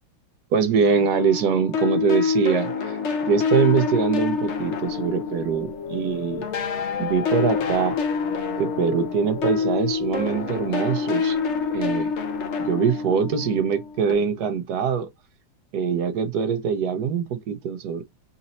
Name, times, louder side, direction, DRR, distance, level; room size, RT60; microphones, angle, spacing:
voice 1, 0.5-3.0 3.3-6.4 7.0-7.9 8.6-11.4 11.7-12.1 12.6-15.1 15.7-18.0, right 6 dB, 70° right, 1.0 m, -23 dB
sound 1, 0.8-6.1 6.4-14.1, left 5 dB, 60° left, 0.7 m, -27 dB
sound 2, 3.8-13.9, left 8 dB, 85° left, 1.5 m, -38 dB
4.0 x 2.6 x 4.0 m
omnidirectional pair, 2.1 m